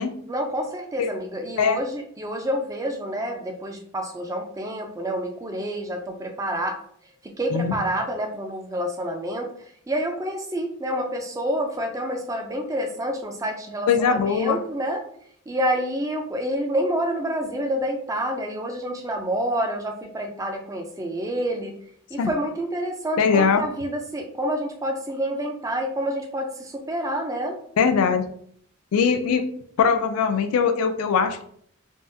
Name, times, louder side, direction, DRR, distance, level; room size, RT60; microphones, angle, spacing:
voice 1, 0.3-6.8 7.2-9.5 9.9-15.0 15.5-21.7 22.1-27.6, equal, 15° right, 3 dB, 0.3 m, -28 dB
voice 2, 13.9-14.6 22.2-22.3 23.2-23.7 27.8-28.3 28.9-29.5 29.8-31.4, left 6 dB, 85° left, 8 dB, 0.3 m, -21 dB
3.5 x 2.0 x 2.6 m, 0.63 s
head